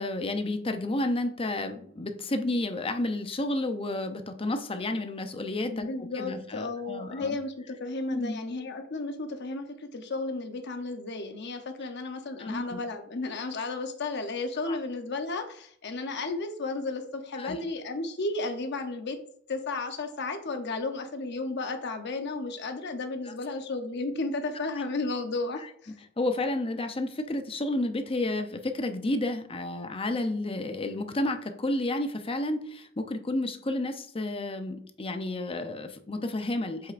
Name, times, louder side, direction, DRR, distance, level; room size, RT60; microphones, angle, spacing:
voice 1, 0.0-5.9 6.2-7.4 8.1-8.4 12.4-12.8 14.7-14.8 17.3-17.6 23.3-23.4 26.2-36.9, left 2 dB, 30° left, 7 dB, 0.6 m, -31 dB
voice 2, 5.7-19.2 19.5-25.9, left 3 dB, 60° left, 6 dB, 0.8 m, -33 dB
7.9 x 5.7 x 2.5 m, 0.63 s
head